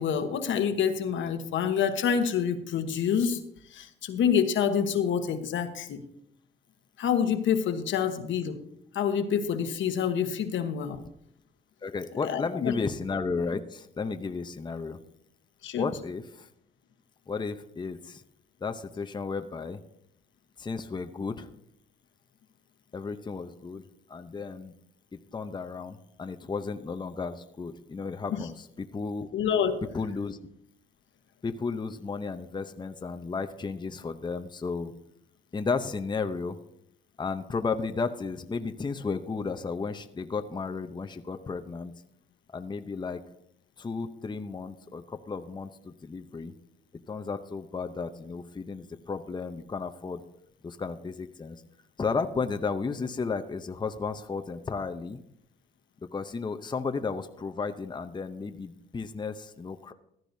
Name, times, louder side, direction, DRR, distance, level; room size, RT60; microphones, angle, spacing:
voice 1, 0.0-3.4 3.7-6.0 7.0-8.6 8.9-11.0 12.2-12.7 15.6-15.8 28.3-28.4 29.3-29.8, left 7 dB, 75° left, 8 dB, 1.2 m, -27 dB
voice 2, 11.8-15.0 15.7-16.5 17.3-18.2 18.6-19.8 20.6-21.5 22.9-23.8 24.1-24.7 25.1-29.3 29.9-30.4 31.4-34.9 35.5-36.6 37.2-41.9 42.5-43.2 43.8-46.5 47.1-50.2 50.6-51.6 52.0-55.2 56.1-59.9, left 4 dB, 20° left, 8 dB, 0.7 m, -33 dB
15.0 x 12.0 x 2.7 m, 0.74 s
cardioid pair, 90°, 20 cm